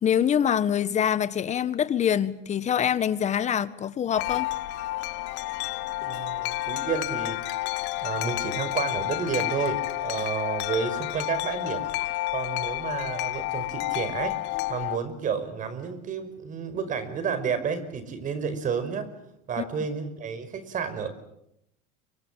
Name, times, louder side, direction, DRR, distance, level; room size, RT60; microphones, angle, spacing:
voice 1, 0.0-4.5 19.6-19.7, left 9 dB, 35° left, 1.6 m, -25 dB
Wind chime, 4.1-15.0, left 18 dB, 65° left, 1.2 m, -30 dB
voice 2, 6.0-7.4 8.0-11.9 12.3-14.4 14.7-19.1 19.5-21.1, right 6 dB, 40° right, 5.3 m, -31 dB
29.0 x 25.5 x 7.6 m
supercardioid pair, 110°, 20 cm